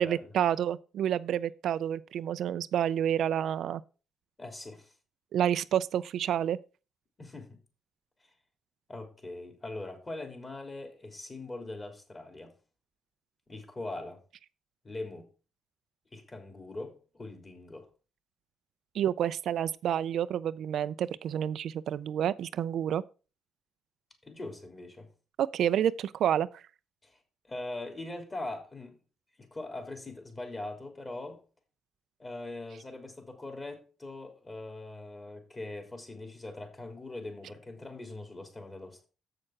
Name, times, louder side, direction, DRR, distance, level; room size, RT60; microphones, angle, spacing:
voice 1, 0.0-3.8 5.3-6.6 18.9-23.0 25.4-26.5, right 10 dB, 70° right, 0.4 m, -29 dB
voice 2, 4.4-4.9 7.2-7.6 8.9-12.5 13.5-14.2 14.8-15.3 16.1-17.9 24.2-25.1 27.0-27.2 27.4-29.0 29.4-31.4 32.2-39.1, left 2 dB, 25° left, 3.4 m, -41 dB
7.6 x 6.5 x 5.9 m
cardioid pair, 90°, 0 cm